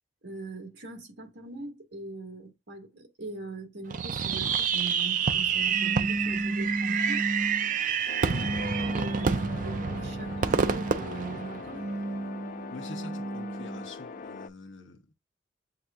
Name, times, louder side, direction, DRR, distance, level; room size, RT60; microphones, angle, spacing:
voice 1, 0.2-7.3 8.9-11.9 12.8-12.9, right 3 dB, 65° right, 1.6 m, -41 dB
Fireworks, 3.9-12.0, right 6 dB, 40° right, 0.4 m, -28 dB
sound 1, 5.7-7.7 8.3-11.0 11.6-13.9, right 1 dB, 85° right, 1.0 m, -34 dB
sound 2, 8.1-14.5, left 4 dB, 45° left, 0.3 m, -42 dB
voice 2, 8.2-8.6 12.7-15.1, left 3 dB, 80° left, 0.9 m, -45 dB
7.8 x 2.7 x 2.4 m
head